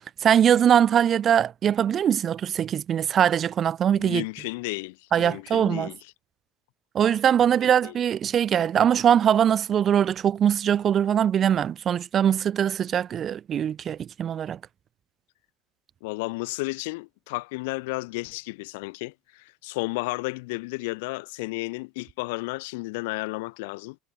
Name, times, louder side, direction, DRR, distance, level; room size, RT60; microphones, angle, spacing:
voice 1, 0.2-4.2 5.1-5.9 6.9-14.6, right 9 dB, 30° right, 0.4 m, -22 dB
voice 2, 3.9-6.0 7.4-7.6 7.8-7.9 16.0-24.0, left 25 dB, 80° left, 0.4 m, -33 dB
supercardioid pair, 135°, 0 cm